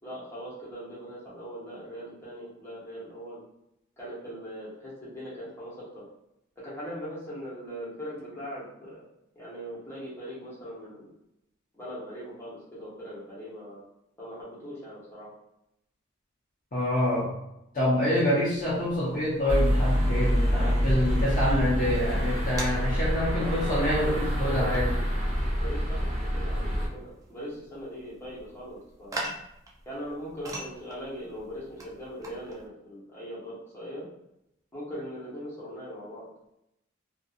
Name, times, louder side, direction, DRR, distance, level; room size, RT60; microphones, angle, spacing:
voice 1, 0.0-3.4 4.0-6.0 6.6-9.0 9.3-11.1 11.7-13.8 14.2-15.3 23.3-23.7 24.0-24.8 25.6-29.3 29.8-34.1 34.7-36.3, equal, 15° left, -8 dB, 1.0 m, -40 dB
voice 2, 16.7-17.3 17.7-24.9, left 1 dB, 40° left, -7 dB, 0.6 m, -26 dB
sound 1, 18.6-32.7, right 1 dB, 15° right, 0.3 m, -42 dB
sound 2, 19.5-26.9, equal, 35° right, 0.9 m, -26 dB
2.6 x 2.4 x 2.4 m, 0.83 s
head